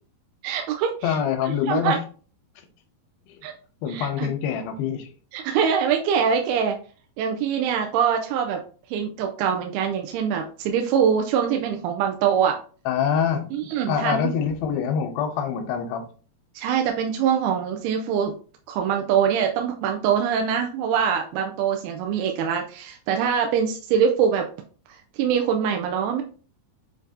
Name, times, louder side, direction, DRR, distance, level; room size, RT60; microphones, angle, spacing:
voice 1, 0.4-2.0 3.4-3.5 3.9-4.3 5.3-6.8 7.2-8.6 8.9-12.6 13.5-14.3 16.5-18.3 18.7-24.5 24.9-26.2, right 7 dB, 90° right, 3 dB, 2.5 m, -24 dB
voice 2, 1.0-1.9 3.8-5.1 12.9-13.5 13.9-16.0, left 7 dB, 85° left, 5 dB, 2.4 m, -25 dB
7.1 x 2.7 x 2.6 m, 0.40 s
omnidirectional pair, 4.4 m